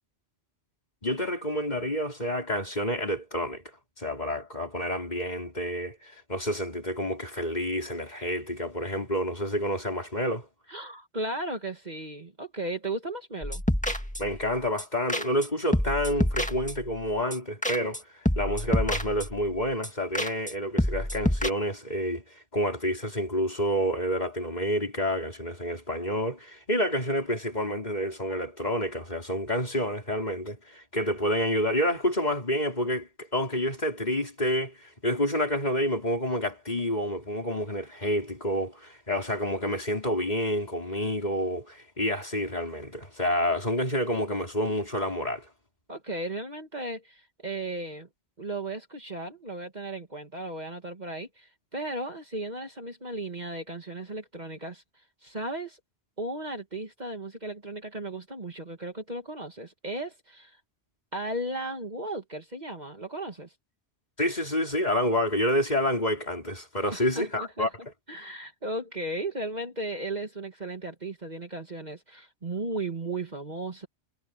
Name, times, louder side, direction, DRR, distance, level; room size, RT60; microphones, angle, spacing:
voice 1, 1.0-3.6 4.0-10.5 14.2-18.0 18.4-22.2 22.5-45.5 64.2-67.7, equal, 40° left, 5.1 m, -28 dB
voice 2, 10.7-13.6 45.9-48.1 48.4-54.8 55.2-55.8 56.2-60.6 61.1-63.5 66.9-67.7 68.1-73.9, right 2 dB, 40° right, 2.2 m, -35 dB
sound 1, 13.4-14.4 14.8-14.9 15.1-15.5 15.7-16.9 17.3-17.4 17.6-18.0 18.2-19.5 19.8-19.9 20.1-20.5 20.8-21.5, equal, 5° left, 1.8 m, -28 dB
omnidirectional pair, 1.2 m